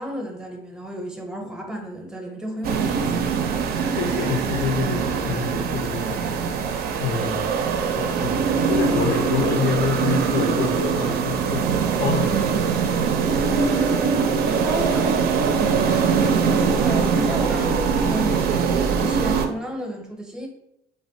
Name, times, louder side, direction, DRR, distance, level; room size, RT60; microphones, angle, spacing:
voice 1, 0.0-3.1 13.4-18.6 18.9-20.5, equal, 5° right, 0.6 m, -32 dB
sound 1, 2.6-19.5, right 6 dB, 70° right, 0.4 m, -22 dB
voice 2, 3.9-6.6 7.0-7.5 7.9-12.5, left 6 dB, 75° left, 0.5 m, -27 dB
3.2 x 2.1 x 2.6 m
cardioid pair, 110°, 17 cm